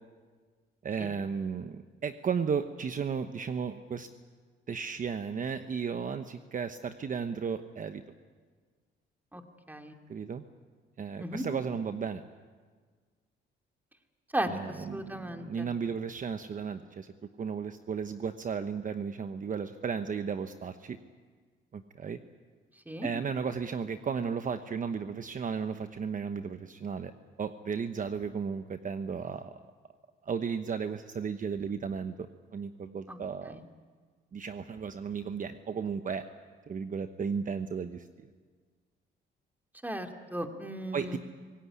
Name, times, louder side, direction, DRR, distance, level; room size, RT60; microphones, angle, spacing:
voice 1, 0.8-4.1 4.7-8.0 10.1-10.4 11.0-12.2 14.4-17.1 17.4-21.0 21.7-22.2 23.0-27.1 27.4-29.5 30.2-33.6 34.3-36.2 36.7-38.3 40.9-41.2, right 6 dB, 40° right, 9 dB, 1.0 m, -34 dB
voice 2, 14.3-15.7 22.9-23.1 33.1-33.2 33.5-33.6 39.8-41.2, right 1 dB, 10° right, 4 dB, 2.5 m, -36 dB
25.0 x 17.5 x 9.8 m, 1.5 s
cardioid pair, 90°, 20 cm